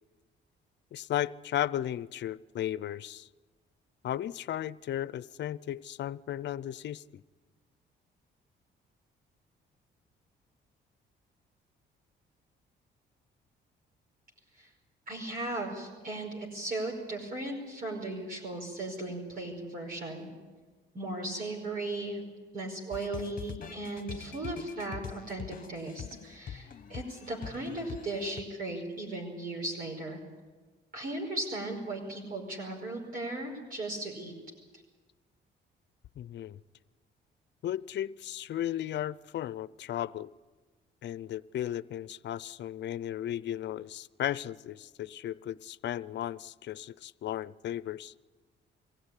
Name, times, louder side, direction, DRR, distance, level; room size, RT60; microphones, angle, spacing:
voice 1, 0.9-3.3 4.0-7.2 36.2-36.6 37.6-40.3 41.0-48.1, left 11 dB, 60° left, 18 dB, 0.6 m, -35 dB
voice 2, 15.1-20.3 20.9-22.2 22.5-30.2 30.9-34.3, right 2 dB, 45° right, -1 dB, 5.3 m, -37 dB
sound 1, 22.9-28.4, left 8 dB, 45° left, 1.3 m, -44 dB
23.5 x 16.0 x 9.9 m, 1.4 s
cardioid pair, 90°, 20 cm